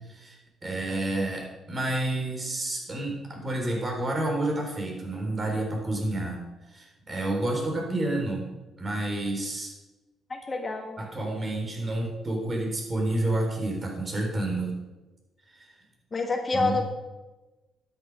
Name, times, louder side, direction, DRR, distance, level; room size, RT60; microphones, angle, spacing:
voice 1, 0.1-6.4 6.7-8.4 8.8-9.7 11.0-14.8 15.5-15.7 16.5-16.8, right 1 dB, 35° right, 0 dB, 4.2 m, -29 dB
voice 2, 10.3-10.9 16.1-16.8, left 3 dB, 30° left, 3 dB, 1.6 m, -27 dB
12.5 x 9.1 x 5.0 m, 1.1 s
cardioid pair, 90°, 0 cm